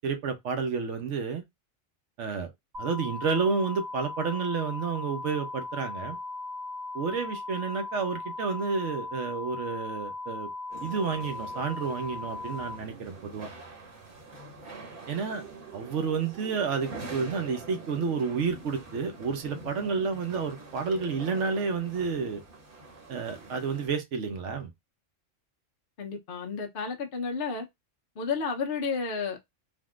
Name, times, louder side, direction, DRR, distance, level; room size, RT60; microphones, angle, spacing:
voice 1, 0.0-1.4 2.2-2.5 2.8-6.2 6.9-10.5 10.8-13.5 15.1-15.4 15.7-22.4 23.1-24.7, right 5 dB, 70° right, 1.1 m, -30 dB
sound 1, 2.7-12.8, left 3 dB, 20° right, 0.7 m, -38 dB
sound 2, 10.7-23.9, right 3 dB, 45° right, 1.2 m, -45 dB
voice 2, 26.0-27.7 28.2-29.4, left 5 dB, 50° left, 0.8 m, -32 dB
3.6 x 2.5 x 2.3 m
omnidirectional pair, 1.3 m